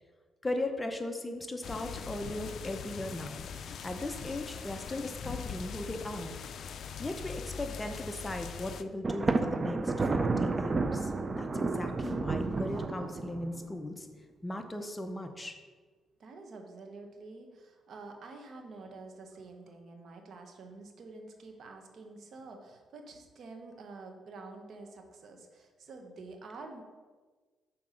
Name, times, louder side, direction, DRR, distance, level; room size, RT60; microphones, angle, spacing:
voice 1, 0.4-3.5 3.8-6.4 7.0-11.1 11.4-14.1 14.4-15.6, left 1 dB, 15° left, 6 dB, 0.6 m, -37 dB
sound 1, 1.6-8.8, left 6 dB, 60° left, 0.4 m, -42 dB
Thunder, 9.0-13.6, right 3 dB, 30° right, 0.4 m, -31 dB
voice 2, 16.2-26.8, right 3 dB, 60° right, 4 dB, 0.9 m, -48 dB
5.8 x 4.2 x 5.1 m, 1.4 s
cardioid pair, 90°, 0 cm